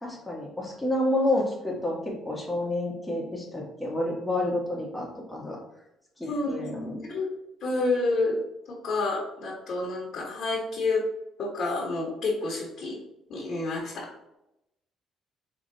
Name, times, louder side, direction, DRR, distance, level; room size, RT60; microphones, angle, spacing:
voice 1, 0.0-5.6 6.2-7.0, left 1 dB, 5° left, -3 dB, 1.3 m, -29 dB
voice 2, 6.2-7.3 7.6-8.4 8.7-11.0 11.4-13.0 13.3-13.9, left 3 dB, 55° left, -3 dB, 1.2 m, -29 dB
4.7 x 3.1 x 2.7 m, 0.85 s
cardioid pair, 110°, 0 cm